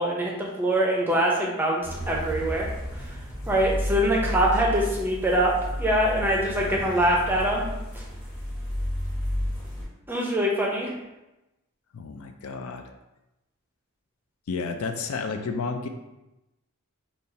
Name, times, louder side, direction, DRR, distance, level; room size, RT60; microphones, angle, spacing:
voice 1, 0.0-2.7 3.0-3.2 3.5-5.5 5.8-7.7 7.9-8.0 10.1-10.9, right 1 dB, 10° right, -2 dB, 0.6 m, -24 dB
sound 1, 1.8-9.8, equal, 10° left, 1.0 m, -32 dB
voice 2, 6.6-7.0 11.9-12.8 14.5-15.9, left 4 dB, 70° left, 5 dB, 0.4 m, -32 dB
5.2 x 2.4 x 2.7 m, 0.97 s
head